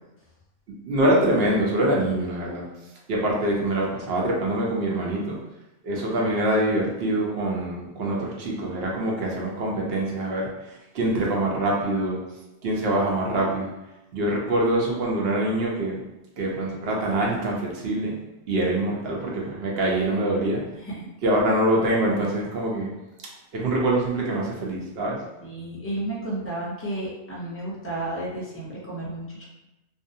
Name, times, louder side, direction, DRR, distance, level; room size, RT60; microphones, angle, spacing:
voice 1, 0.8-2.6 3.1-5.4 5.8-10.5 10.9-12.2 12.6-13.7 14.1-16.0 16.4-18.1 18.5-20.6 21.2-22.9 23.5-25.2, right 1 dB, 65° right, -3 dB, 0.8 m, -24 dB
voice 2, 25.4-29.5, right 1 dB, 15° left, -6 dB, 0.5 m, -32 dB
2.5 x 2.0 x 2.6 m, 0.97 s
omnidirectional pair, 1.2 m